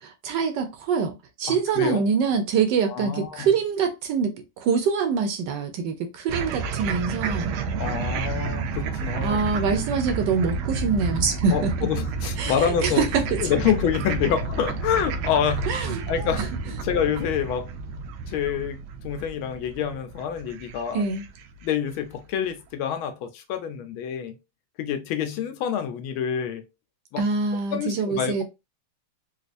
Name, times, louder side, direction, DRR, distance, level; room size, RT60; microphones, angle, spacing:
voice 1, 0.0-7.5 9.2-11.7 12.4-12.5 12.8-13.4 15.7-16.0 20.9-21.2 27.2-28.4, right 5 dB, 70° right, 1.2 m, -25 dB
voice 2, 1.5-2.0 2.9-3.5 7.8-9.5 11.5-13.1 13.4-16.5 16.8-17.7 18.3-21.0 21.6-24.3 24.8-26.6 27.1-27.2 27.7-28.4, left 8 dB, 85° left, 1.5 m, -27 dB
sound 1, 6.3-21.7, right 4 dB, 85° right, 1.4 m, -30 dB
4.2 x 2.4 x 2.5 m
omnidirectional pair, 2.2 m